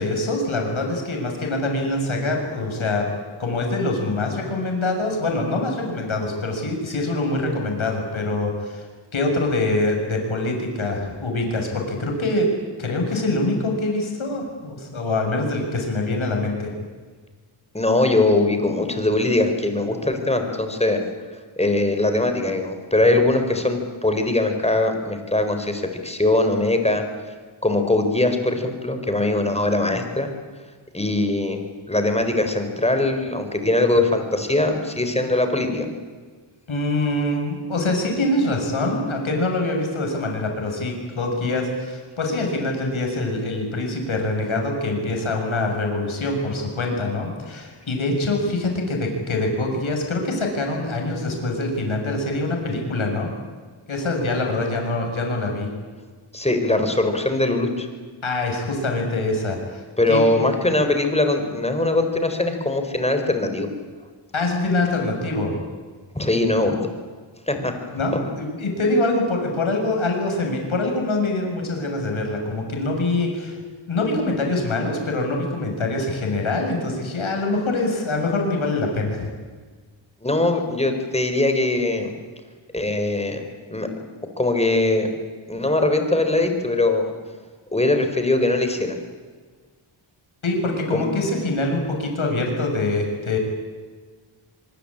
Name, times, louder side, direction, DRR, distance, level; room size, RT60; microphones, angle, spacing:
voice 1, 0.0-3.1 3.4-8.9 9.1-12.5 12.8-16.7 36.7-53.3 53.9-55.7 58.2-59.8 60.1-60.3 64.3-65.5 67.9-73.6 73.9-79.3 90.4-93.4, left 2 dB, 70° left, 2 dB, 6.9 m, -24 dB
voice 2, 17.7-21.0 21.6-27.0 27.6-30.3 30.9-31.6 31.9-35.9 56.3-57.9 60.0-63.7 66.1-66.9 67.5-67.7 80.2-82.1 82.7-83.4 83.7-83.9 84.4-85.1 85.5-87.1 87.7-89.0 90.9-91.0, left 2 dB, 10° left, 6 dB, 4.2 m, -21 dB
24.0 x 23.5 x 8.8 m, 1.5 s
wide cardioid pair, 100°, 50 cm